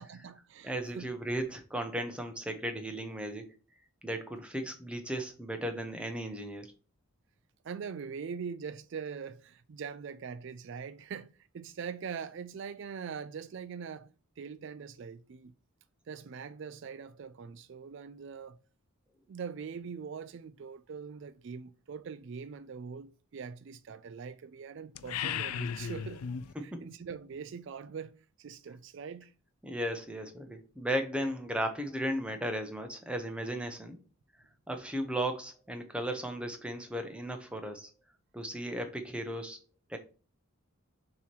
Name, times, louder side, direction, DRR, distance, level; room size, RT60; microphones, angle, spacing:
voice 1, 0.0-1.1 7.6-14.1 14.4-15.5 16.1-18.6 19.3-26.2 26.6-28.1 28.4-29.3, right 6 dB, 55° right, 0.3 m, -42 dB
voice 2, 0.6-3.5 4.0-6.7 26.5-26.9 29.6-34.0 34.7-37.9 38.3-39.6 39.9-40.0, right 1 dB, 5° right, 0.7 m, -35 dB
sound 1, 24.9-26.5, left 8 dB, 85° left, 0.4 m, -35 dB
6.9 x 3.0 x 4.5 m
head